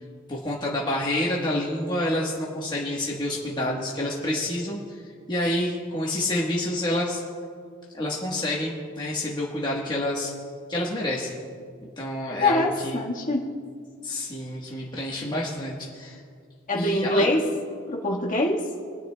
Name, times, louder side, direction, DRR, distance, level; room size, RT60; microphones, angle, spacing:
voice 1, 0.3-5.0 5.3-7.2 7.9-10.3 10.7-11.4 12.0-13.0 14.0-16.2 16.7-17.2, left 1 dB, 20° left, -4 dB, 1.2 m, -28 dB
voice 2, 12.4-13.4 16.7-17.4 17.9-18.7, left 2 dB, 40° left, -1 dB, 1.5 m, -24 dB
26.5 x 10.0 x 2.2 m, 2.1 s
head